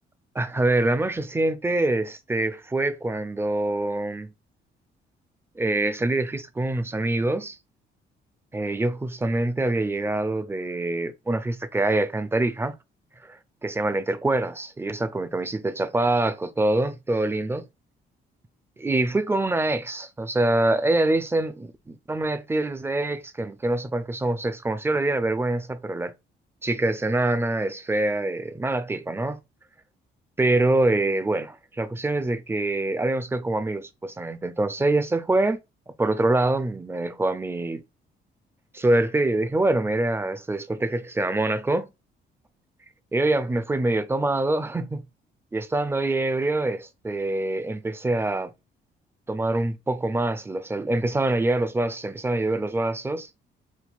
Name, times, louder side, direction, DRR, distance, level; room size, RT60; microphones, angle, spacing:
voice 1, 0.4-4.3 5.6-7.6 8.5-12.7 13.2-13.4 13.6-17.7 18.8-26.1 26.6-29.4 30.4-35.6 36.0-37.8 38.7-41.9 43.1-45.0 45.5-48.5 49.3-53.3, right 2 dB, 10° right, 0.4 m, -25 dB
3.2 x 2.8 x 2.4 m
cardioid pair, 90°, 20 cm